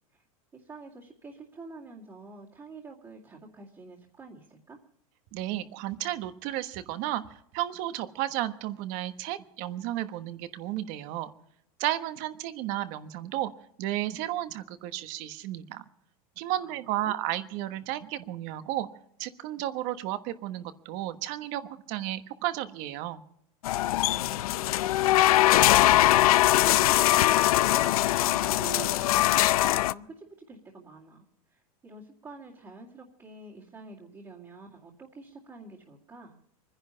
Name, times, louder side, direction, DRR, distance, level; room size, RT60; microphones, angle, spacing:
voice 1, 0.5-4.8 16.6-17.1 24.0-25.1 25.6-31.3 31.5-36.4, right 3 dB, 15° right, -4 dB, 2.2 m, -47 dB
voice 2, 5.3-7.2 7.5-11.3 11.8-13.5 13.8-15.8 16.4-18.9 19.2-23.2, right 14 dB, 45° right, 11 dB, 1.3 m, -33 dB
sound 1, 23.6-29.9, left 15 dB, 90° left, 0.5 m, -22 dB
24.0 x 10.5 x 5.5 m, 0.73 s
supercardioid pair, 155°, 18 cm